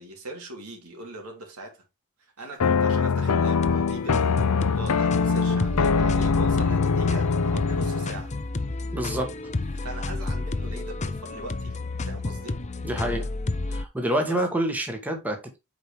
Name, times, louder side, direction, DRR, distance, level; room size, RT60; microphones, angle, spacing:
voice 1, 0.0-1.8 2.2-8.3 9.7-11.8 12.0-12.6 14.2-14.4, right 1 dB, 75° right, 2.9 m, -40 dB
sound 1, 2.6-8.2, left 5 dB, 85° left, 0.6 m, -23 dB
sound 2, 3.5-13.8, left 2 dB, 30° left, 0.6 m, -31 dB
voice 2, 8.9-9.3 12.8-13.3 13.7-15.6, right 1 dB, 5° right, 1.5 m, -27 dB
8.0 x 4.9 x 3.2 m
head